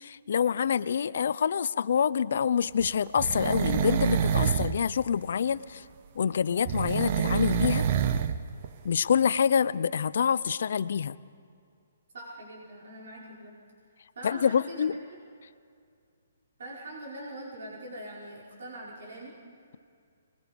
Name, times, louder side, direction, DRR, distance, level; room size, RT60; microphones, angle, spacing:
voice 1, 0.0-5.8 6.2-7.9 8.8-11.2 14.2-15.0, left 7 dB, 55° left, 17 dB, 0.5 m, -26 dB
sound 1, 2.8-4.8 6.6-8.4 8.6-8.7, right 8 dB, 35° right, 0.7 m, -27 dB
voice 2, 12.1-13.5 14.2-15.2 16.6-19.3, right 1 dB, 60° right, -4 dB, 5.1 m, -43 dB
26.0 x 21.5 x 5.3 m, 2.3 s
hypercardioid pair, 170°, 0 cm